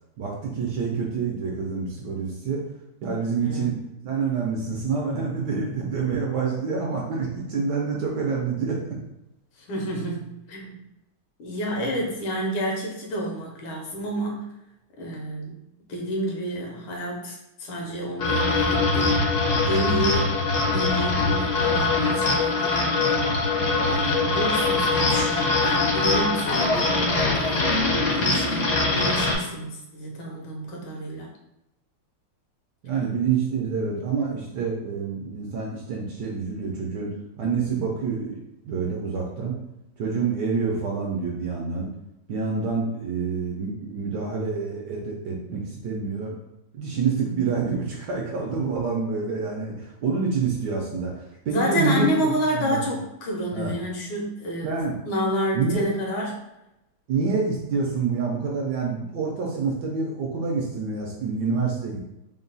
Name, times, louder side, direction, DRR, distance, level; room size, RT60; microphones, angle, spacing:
voice 1, 0.2-2.6 3.0-3.8 4.0-8.8 32.8-37.1 37.4-38.4 38.6-39.5 40.0-41.9 42.3-46.3 46.7-52.1 52.5-52.8 53.5-53.7 54.6-54.9 55.5-55.8 57.1-62.0, right 5 dB, 70° right, -1 dB, 1.0 m, -27 dB
voice 2, 3.4-3.7 9.6-10.8 11.4-14.5 15.0-15.6 15.9-20.4 20.6-23.3 23.8-27.7 28.1-31.3 51.5-54.8 55.1-56.3, equal, 85° left, -1 dB, 1.7 m, -29 dB
sound 1, 18.2-29.3, left 3 dB, 60° left, 0.8 m, -22 dB
3.8 x 2.3 x 3.9 m, 0.89 s
omnidirectional pair, 2.3 m